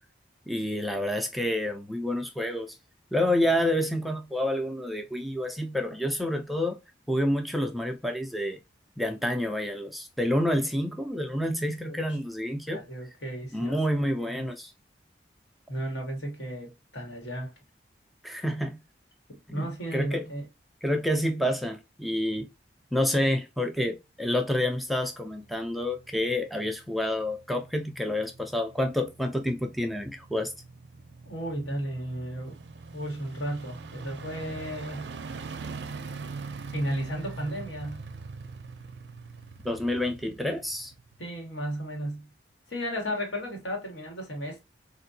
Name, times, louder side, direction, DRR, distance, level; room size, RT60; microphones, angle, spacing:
voice 1, 0.5-2.8 3.1-6.8 7.1-8.6 9.0-12.8 13.5-14.7 18.2-18.8 19.5-20.3 20.8-22.5 22.9-30.5 39.6-40.9, left 1 dB, ahead, 0.3 m, -28 dB
voice 2, 12.7-13.8 14.1-14.5 15.7-17.5 19.3-20.5 31.2-32.6 32.9-35.1 36.7-38.1 41.2-42.3 42.7-44.6, equal, 90° left, 1.5 m, -34 dB
sound 1, 25.2-41.6 41.9-42.0, right 4 dB, 75° right, 0.4 m, -43 dB
3.6 x 2.5 x 2.6 m
head